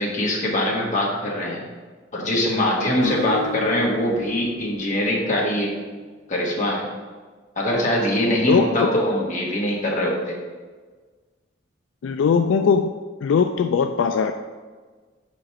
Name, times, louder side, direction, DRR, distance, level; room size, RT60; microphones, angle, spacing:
voice 1, 0.0-1.6 2.1-5.7 6.3-6.9 7.5-10.3, left 1 dB, 40° left, -3 dB, 1.5 m, -22 dB
Acoustic guitar, 3.0-5.8, left 2 dB, 35° right, 1.5 m, -35 dB
voice 2, 8.3-8.9 12.0-12.9 13.2-14.3, left 6 dB, 75° left, 7 dB, 0.3 m, -20 dB
5.2 x 5.1 x 6.0 m, 1.4 s
head